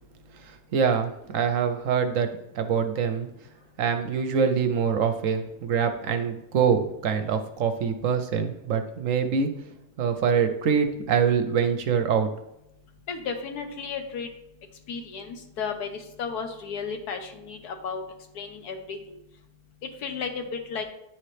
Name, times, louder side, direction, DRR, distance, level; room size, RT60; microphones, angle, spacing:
voice 1, 0.4-2.3 2.5-3.3 3.8-9.5 10.0-12.3, right 6 dB, 65° right, 7 dB, 0.9 m, -24 dB
voice 2, 13.1-14.3 14.9-18.0 18.3-19.2 20.0-20.8, left 5 dB, 75° left, 6 dB, 1.5 m, -33 dB
10.5 x 4.3 x 3.3 m, 0.83 s
omnidirectional pair, 1.7 m